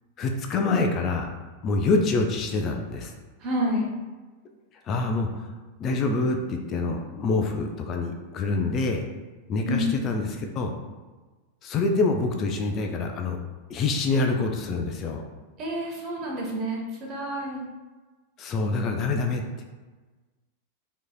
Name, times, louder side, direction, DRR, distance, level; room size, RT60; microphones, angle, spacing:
voice 1, 0.2-1.3 1.6-3.1 4.9-5.5 5.8-9.1 9.5-10.7 11.6-13.4 13.7-15.2 18.4-19.6, left 3 dB, 30° left, 3 dB, 0.3 m, -26 dB
voice 2, 3.4-3.9 9.7-9.8 15.6-17.6, equal, 35° right, -1 dB, 0.9 m, -29 dB
4.5 x 2.8 x 2.2 m, 1.3 s
figure-of-eight pair, 90°, 0 cm